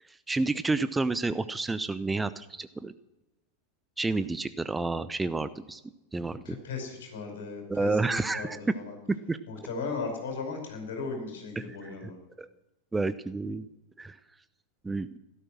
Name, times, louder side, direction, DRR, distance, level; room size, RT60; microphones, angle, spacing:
voice 1, 0.1-2.9 4.0-5.8 6.1-6.4 7.7-8.6 9.1-9.4 11.6-11.9 12.4-12.5 12.9-13.7 14.0-14.2 14.8-15.1, right 3 dB, 10° right, 14 dB, 0.6 m, -30 dB
voice 2, 6.4-9.0 9.5-12.2, left 4 dB, 60° left, 4 dB, 5.3 m, -37 dB
16.5 x 13.5 x 6.2 m, 1.0 s
figure-of-eight pair, 90°, 0 cm